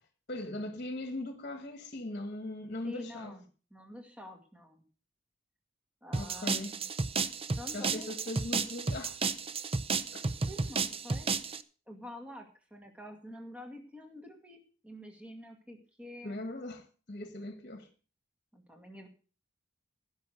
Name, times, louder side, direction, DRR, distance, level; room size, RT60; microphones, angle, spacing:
voice 1, 0.3-3.4 6.1-6.8 7.7-9.2 10.1-10.3 16.2-17.9, left 1 dB, 45° left, 1.4 m, -39 dB
voice 2, 2.8-3.4 3.7-4.8 6.0-6.8 7.6-8.1 10.5-11.6 11.9-16.6 18.5-19.1, left 1 dB, 5° right, 2.1 m, -48 dB
sound 1, 6.1-11.6, right 4 dB, 30° right, 0.7 m, -32 dB
16.0 x 6.4 x 6.5 m
head